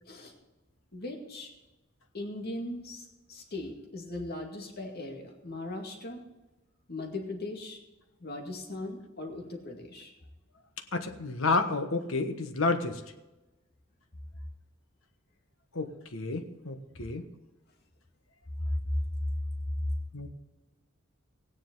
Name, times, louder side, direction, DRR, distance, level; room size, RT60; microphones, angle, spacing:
voice 1, 0.9-1.5 2.1-6.2 6.9-7.8 8.2-10.1 18.6-18.7, left 2 dB, 50° left, 2 dB, 2.2 m, -39 dB
voice 2, 10.9-13.0 15.7-17.3 20.1-20.3, left 3 dB, 80° left, 7 dB, 1.3 m, -30 dB
16.5 x 10.0 x 3.9 m, 1.1 s
head